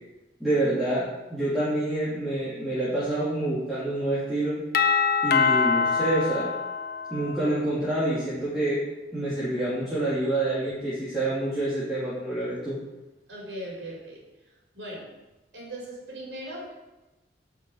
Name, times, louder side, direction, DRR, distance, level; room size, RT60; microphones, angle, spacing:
voice 1, 0.4-4.5 5.2-6.5 7.1-8.8 9.1-12.8, right 1 dB, ahead, -11 dB, 3.0 m, -27 dB
Doorbell, 4.7-7.6, left 5 dB, 55° left, 0.8 m, -24 dB
voice 2, 13.3-14.2 14.7-15.1 15.5-16.7, right 1 dB, 80° right, -3 dB, 4.6 m, -38 dB
9.9 x 6.1 x 8.1 m, 1.0 s
head